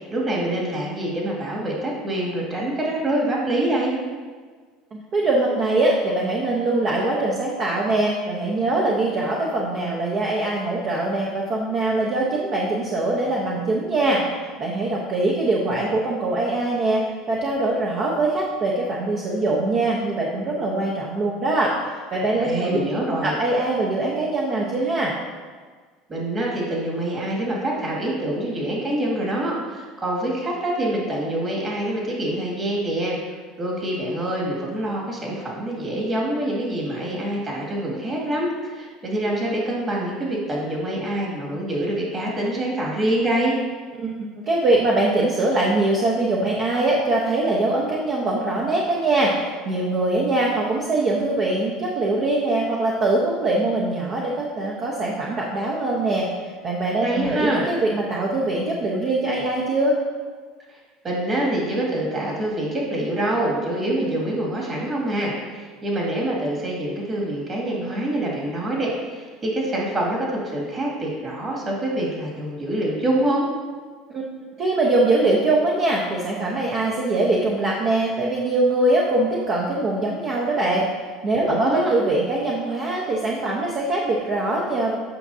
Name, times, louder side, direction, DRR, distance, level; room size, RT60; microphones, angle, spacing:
voice 1, 0.0-3.9 22.4-23.3 26.1-33.2 33.6-43.6 57.0-57.7 61.0-73.5 81.5-81.9, right 1 dB, 30° right, -3 dB, 2.2 m, -25 dB
voice 2, 4.9-14.2 14.6-17.0 17.3-21.7 22.1-22.8 23.2-25.1 44.0-56.3 56.6-59.9 74.1-74.2 74.6-80.9 81.2-85.0, right 2 dB, 45° right, -3 dB, 1.0 m, -22 dB
8.7 x 6.1 x 2.7 m, 1.5 s
supercardioid pair, 120°, 0 cm